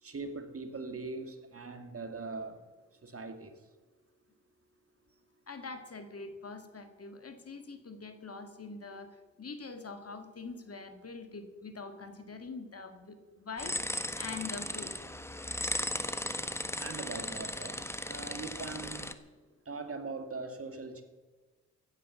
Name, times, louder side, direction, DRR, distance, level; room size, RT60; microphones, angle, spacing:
voice 1, 0.0-2.6 3.0-3.6 16.8-19.1 19.7-21.0, right 3 dB, 45° right, 7 dB, 2.0 m, -41 dB
voice 2, 5.5-15.0, left 4 dB, 50° left, 7 dB, 1.9 m, -44 dB
sound 1, 13.6-19.1, left 1 dB, 10° left, 1.1 m, -36 dB
15.0 x 9.3 x 7.1 m, 1.3 s
cardioid pair, 55°, 31 cm